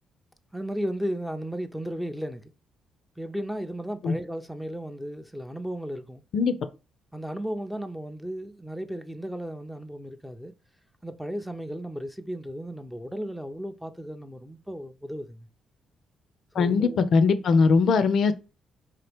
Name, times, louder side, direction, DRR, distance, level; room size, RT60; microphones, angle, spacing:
voice 1, 0.5-2.5 3.2-6.2 7.1-10.5 11.0-15.5 16.5-17.0, equal, ahead, 0.4 m, -35 dB
voice 2, 16.5-18.3, left 4 dB, 65° left, 0.4 m, -20 dB
3.5 x 2.9 x 3.4 m
cardioid pair, 90°, 0 cm